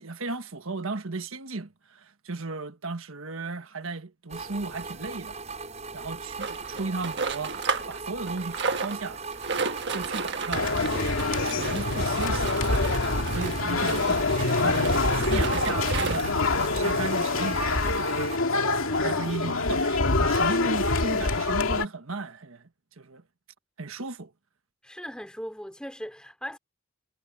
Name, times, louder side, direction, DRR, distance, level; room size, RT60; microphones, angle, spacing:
voice 1, 0.0-5.4 5.9-7.6 7.9-9.2 9.9-10.7 11.4-12.5 13.3-17.9 18.9-22.7 23.0-23.2 23.8-24.3, right 3 dB, 80° right, 1.5 m, -35 dB
sound 1, 4.3-18.4, right 4 dB, 35° right, 6.4 m, -38 dB
sound 2, 6.4-8.0 8.3-16.4 17.1-17.2 17.4-17.5 18.0-18.1, right 4 dB, 55° right, 1.4 m, -33 dB
sound 3, 10.5-21.9, left 3 dB, 75° left, 2.3 m, -25 dB
voice 2, 18.9-19.6 24.8-26.6, equal, 5° left, 4.6 m, -39 dB
head